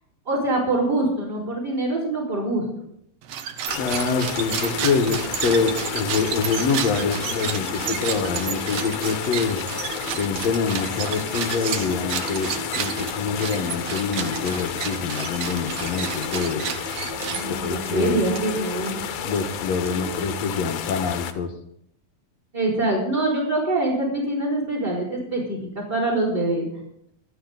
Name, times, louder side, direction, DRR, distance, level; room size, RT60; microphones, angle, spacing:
voice 1, 0.2-2.6 17.2-19.0 22.5-26.6, right 2 dB, 25° right, -3 dB, 5.0 m, -24 dB
sound 1, 3.2-17.8, right 8 dB, 65° right, 1.6 m, -31 dB
sound 2, 3.7-21.3, left 9 dB, 75° left, 2.7 m, -32 dB
voice 2, 3.8-9.6 10.2-12.5 12.8-16.6 17.5-18.2 19.2-21.5, left 5 dB, 60° left, 5 dB, 2.1 m, -25 dB
sound 3, 4.4-20.4, right 2 dB, 40° right, 2.4 m, -38 dB
26.0 x 9.5 x 4.0 m, 0.72 s
omnidirectional pair, 4.1 m